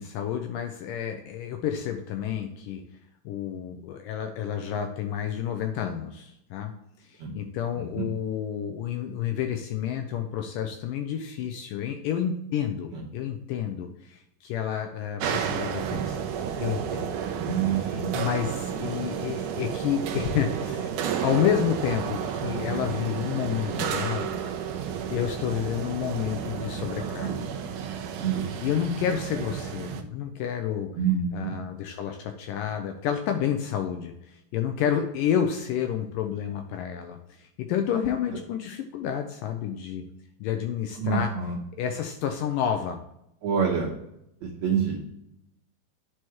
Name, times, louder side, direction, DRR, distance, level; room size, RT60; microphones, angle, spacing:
voice 1, 0.0-2.8 3.3-6.7 7.0-16.2 16.6-17.1 17.6-20.9 21.2-24.4 25.1-27.5 28.4-30.9 31.3-40.0 40.4-41.3 41.8-43.0, left 9 dB, 85° left, 6 dB, 2.0 m, -30 dB
sound 1, 15.2-30.0, right 8 dB, 85° right, 1.8 m, -31 dB
voice 2, 17.4-18.2 23.7-23.9 27.2-27.4 28.2-28.5 31.0-31.5 41.0-41.6 43.4-43.9 44.4-45.0, right 7 dB, 65° right, -3 dB, 1.9 m, -27 dB
10.5 x 4.7 x 3.0 m, 0.80 s
omnidirectional pair, 4.4 m